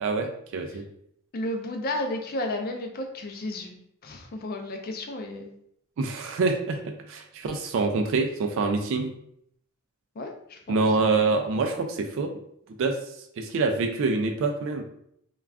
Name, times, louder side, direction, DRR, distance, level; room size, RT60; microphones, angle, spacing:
voice 1, 0.0-0.9 6.0-9.1 10.7-12.3 12.8-13.0 13.4-14.8, right 3 dB, 60° right, 4 dB, 0.3 m, -26 dB
voice 2, 1.3-3.8 4.0-5.5 10.2-11.2, left 1 dB, 40° left, 4 dB, 0.4 m, -33 dB
2.4 x 2.3 x 3.3 m, 0.71 s
head